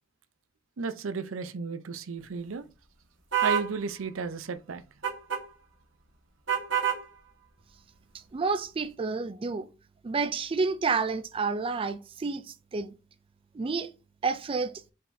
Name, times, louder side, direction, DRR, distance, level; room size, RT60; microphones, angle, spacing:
voice 1, 0.8-2.6 3.4-4.8, right 4 dB, 85° right, 0.5 m, -33 dB
sound 1, 3.3-3.7 5.0-5.4 6.5-7.0, right 9 dB, 65° right, 1.2 m, -26 dB
voice 2, 8.3-9.7 10.0-12.9 13.5-13.9 14.2-14.7, right 4 dB, 25° right, 0.3 m, -29 dB
5.3 x 3.8 x 2.6 m
head